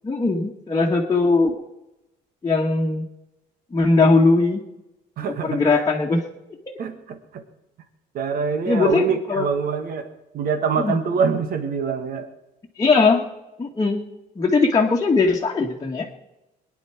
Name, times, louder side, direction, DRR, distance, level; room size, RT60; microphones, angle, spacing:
voice 1, 0.0-1.6 2.4-3.1 3.7-4.6 5.4-6.2 8.6-9.5 10.8-11.0 12.8-13.3 13.6-14.0 14.3-16.2, left 3 dB, 20° left, -2 dB, 1.6 m, -19 dB
voice 2, 5.2-5.8 6.8-7.4 8.1-12.3, right 6 dB, 60° right, 8 dB, 1.8 m, -25 dB
22.0 x 10.0 x 4.6 m, 0.95 s
cardioid pair, 110°, 17 cm